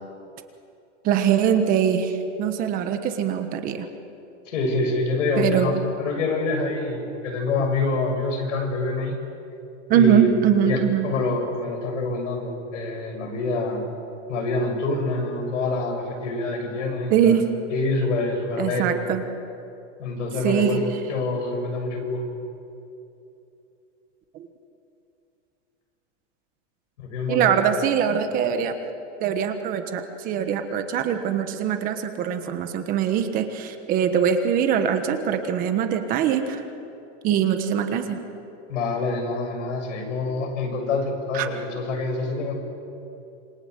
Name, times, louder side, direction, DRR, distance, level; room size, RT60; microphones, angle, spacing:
voice 1, 1.0-3.9 5.4-5.8 9.9-11.1 17.1-17.5 18.6-19.2 20.4-21.0 24.3-24.5 27.3-28.8 29.2-36.6 37.2-38.2 41.3-41.5, right 8 dB, 25° right, 7 dB, 1.3 m, -22 dB
voice 2, 4.5-5.7 6.0-9.2 9.9-10.3 10.6-13.8 14.3-17.4 17.7-18.9 20.0-20.8 21.1-22.2 27.0-27.5 38.7-42.5, left 3 dB, 90° left, 3 dB, 7.0 m, -26 dB
27.0 x 24.0 x 8.2 m, 2.8 s
supercardioid pair, 175°, 36 cm